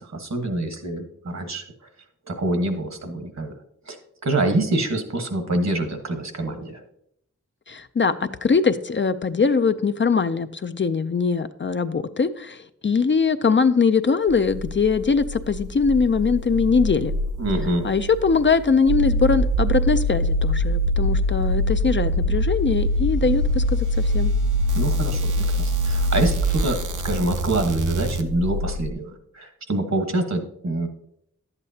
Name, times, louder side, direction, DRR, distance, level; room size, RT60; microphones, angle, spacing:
voice 1, 0.0-1.6 2.3-3.5 3.9-4.0 4.2-6.8 17.4-17.9 24.7-29.1 29.3-30.9, right 2 dB, 65° right, 5 dB, 1.4 m, -25 dB
voice 2, 7.7-12.6 12.8-17.1 17.8-24.3, left 5 dB, 40° left, 10 dB, 0.4 m, -21 dB
sound 1, 14.3-28.9, equal, 85° right, 0.6 m, -24 dB
11.0 x 8.2 x 2.8 m, 0.72 s
cardioid pair, 45°, 30 cm